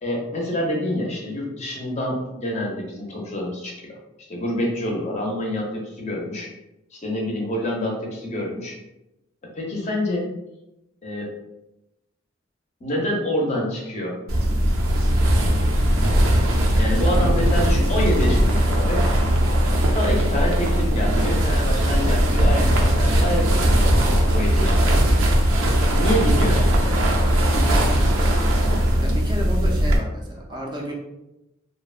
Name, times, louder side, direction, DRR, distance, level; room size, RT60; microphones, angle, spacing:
voice 1, 0.0-4.0 4.3-6.5 6.9-8.8 9.4-10.3 11.0-11.3 12.8-14.2 16.8-19.0 19.9-25.0 25.9-27.1, left 1 dB, 35° left, -1 dB, 0.5 m, -27 dB
sound 1, 14.3-30.0, equal, 85° right, 0.5 m, -19 dB
voice 2, 17.0-17.7 18.4-18.6 24.8-25.8 29.0-30.9, right 1 dB, 20° right, -1 dB, 0.4 m, -33 dB
2.7 x 2.0 x 2.3 m, 0.92 s
head